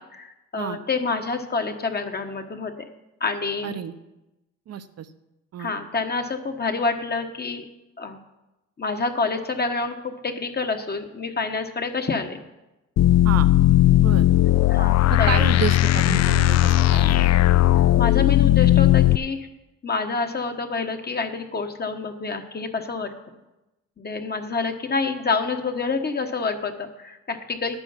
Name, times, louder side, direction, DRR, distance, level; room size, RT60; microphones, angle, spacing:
voice 1, 0.0-2.8 3.2-3.8 5.6-7.6 8.0-8.2 8.8-12.4 14.7-15.5 18.0-19.5 19.8-23.1 24.0-27.8, left 4 dB, 35° left, 5 dB, 1.2 m, -27 dB
voice 2, 3.6-3.9 4.7-5.1 5.5-5.7 13.2-13.5 13.9-14.3 15.3-17.4, right 9 dB, 55° right, 12 dB, 0.8 m, -30 dB
sound 1, 13.0-19.2, left 14 dB, 60° left, 0.4 m, -17 dB
11.0 x 9.1 x 5.7 m, 0.98 s
cardioid pair, 90°, 30 cm